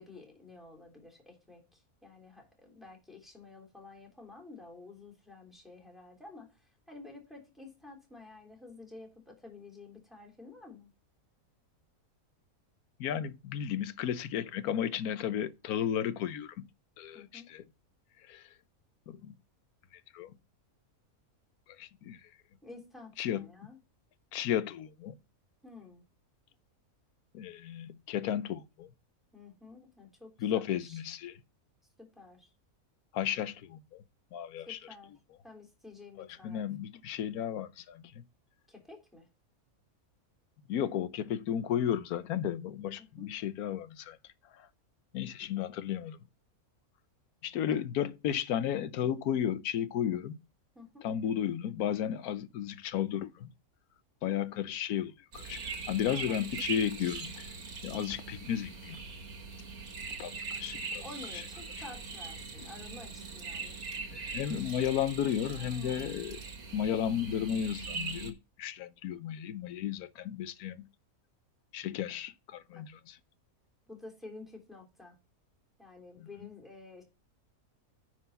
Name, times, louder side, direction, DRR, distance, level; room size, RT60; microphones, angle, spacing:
voice 1, 0.0-10.9 17.1-17.5 22.6-23.8 25.6-26.0 29.3-31.0 32.0-32.5 34.7-35.1 35.4-36.6 38.7-39.3 43.0-43.3 47.7-47.8 50.7-51.1 56.1-56.7 61.0-63.8 65.5-66.1 72.7-72.8 73.9-75.1 75.8-77.0, left 3 dB, ahead, 3.4 m, -51 dB
voice 2, 13.0-16.7 17.0-17.6 18.2-18.5 19.1-19.3 19.9-20.3 21.8-22.2 23.2-23.5 24.3-25.1 27.3-28.9 30.4-31.4 33.1-34.0 34.3-34.8 36.2-38.2 40.7-44.2 44.5-44.7 45.1-46.2 47.4-50.4 51.0-53.5 54.2-57.5 57.8-59.0 60.2-61.0 61.3-61.4 61.8-61.9 62.6-62.7 64.1-66.4 66.7-70.9 71.7-73.2 76.2-76.3, left 9 dB, 90° left, 1.2 m, -34 dB
sound 1, 55.3-68.3, right 4 dB, 85° right, 2.1 m, -41 dB
9.8 x 4.7 x 5.5 m
omnidirectional pair, 1.5 m